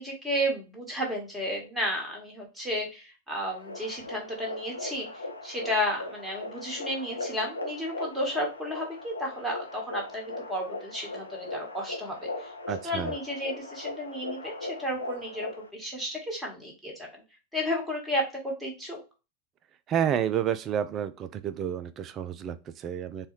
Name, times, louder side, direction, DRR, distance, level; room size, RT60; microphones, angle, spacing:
voice 1, 0.0-5.1 5.4-12.5 12.8-17.1 17.5-19.0, equal, 5° right, -1 dB, 1.4 m, -32 dB
sound 1, 3.5-15.7, left 2 dB, 80° left, 0.5 m, -39 dB
voice 2, 12.7-13.1 19.9-23.3, right 9 dB, 30° right, 12 dB, 0.3 m, -30 dB
4.0 x 2.3 x 3.1 m, 0.30 s
figure-of-eight pair, 90°, 0 cm